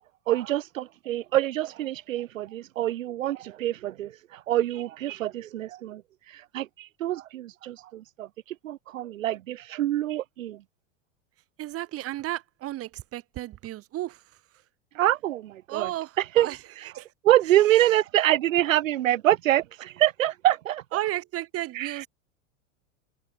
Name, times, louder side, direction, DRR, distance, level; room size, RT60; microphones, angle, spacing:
voice 1, 0.3-6.0 6.3-8.3 8.6-10.6 14.9-15.9 16.2-16.5 17.2-20.8 21.7-22.1, right 13 dB, 85° right, 2.6 m, -25 dB
voice 2, 11.6-14.2 15.7-16.6 16.9-17.1 17.7-17.9 20.9-22.1, right 15 dB, 35° right, 5.0 m, -33 dB
supercardioid pair, 135°, 38 cm